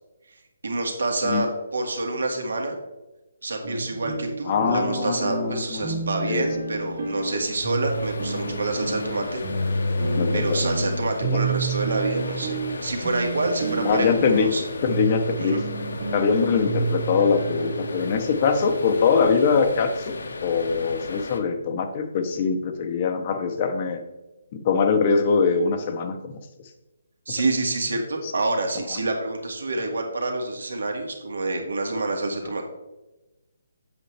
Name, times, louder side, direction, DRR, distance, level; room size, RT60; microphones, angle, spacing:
voice 1, 0.6-2.8 3.4-9.4 10.3-14.6 15.4-15.6 27.3-32.6, right 2 dB, 80° right, 3 dB, 1.9 m, -27 dB
sound 1, 3.6-19.9, right 3 dB, 65° right, 2.1 m, -30 dB
voice 2, 4.5-6.0 6.3-6.5 10.2-10.6 11.2-11.4 13.8-14.5 14.8-15.6 16.1-20.1 20.4-24.0 24.5-26.4, left 5 dB, 25° left, 7 dB, 0.7 m, -23 dB
sound 2, 4.7-21.4, left 2 dB, 75° left, 1.1 m, -36 dB
7.8 x 7.5 x 3.3 m, 1.0 s
hypercardioid pair, 175°, 0 cm